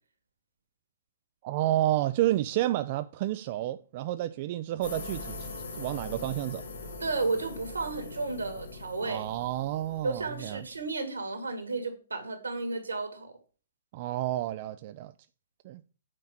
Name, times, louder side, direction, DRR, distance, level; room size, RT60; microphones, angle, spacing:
voice 1, 1.4-5.5 5.8-6.6 9.1-10.6 13.9-15.1 15.6-15.8, right 14 dB, 45° right, 0.4 m, -30 dB
sound 1, 4.8-10.9, left 3 dB, 65° left, 4.6 m, -42 dB
voice 2, 7.0-9.2 10.0-13.3, right 3 dB, 85° right, 2.6 m, -33 dB
8.9 x 4.6 x 6.1 m
figure-of-eight pair, 125°, 0 cm